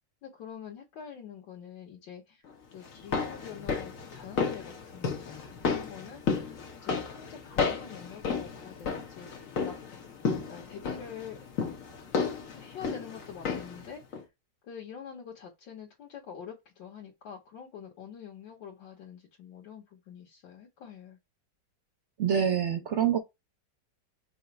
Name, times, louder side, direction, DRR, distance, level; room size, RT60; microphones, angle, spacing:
voice 1, 0.2-2.4 2.7-6.5 6.8-9.3 9.6-9.9 10.2-11.4 12.6-14.2 14.6-21.2, left 8 dB, 85° left, 1.8 m, -46 dB
sound 1, 2.8-13.9 14.1-14.2, left 5 dB, 50° left, 1.3 m, -33 dB
voice 2, 22.2-23.2, right 8 dB, 60° right, 0.7 m, -26 dB
5.5 x 2.0 x 4.6 m
omnidirectional pair, 1.9 m